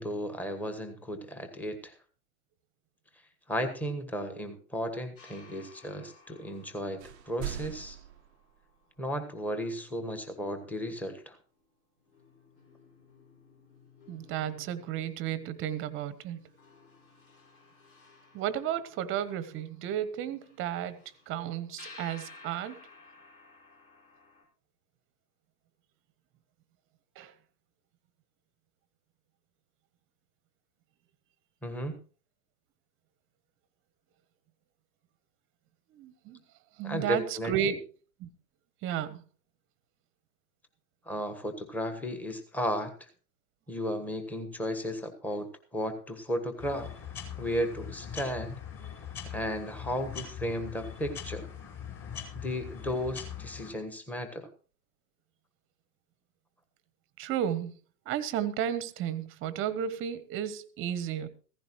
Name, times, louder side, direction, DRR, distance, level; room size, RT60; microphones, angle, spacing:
voice 1, 0.0-1.9 3.5-7.0 7.3-8.0 9.0-11.4 31.6-32.0 36.8-37.7 41.1-43.1 43.7-46.9 47.4-48.6 49.2-51.5 52.3-54.5, equal, 5° left, 1.3 m, -34 dB
sound 1, 5.2-10.0 11.5-11.6 12.0-24.4, left 4 dB, 60° left, 5.8 m, -56 dB
sound 2, 6.5-6.7 7.0-9.0, right 13 dB, 45° right, 0.6 m, -42 dB
voice 2, 14.1-16.4 18.3-22.8 27.2-27.3 35.9-36.4 36.8-37.8 38.2-38.3 38.8-39.2 57.2-57.7 58.1-61.3, right 10 dB, 25° right, 1.0 m, -33 dB
sound 3, 46.6-53.7, left 8 dB, 30° left, 4.5 m, -42 dB
15.5 x 15.0 x 3.1 m
hypercardioid pair, 115°, 48 cm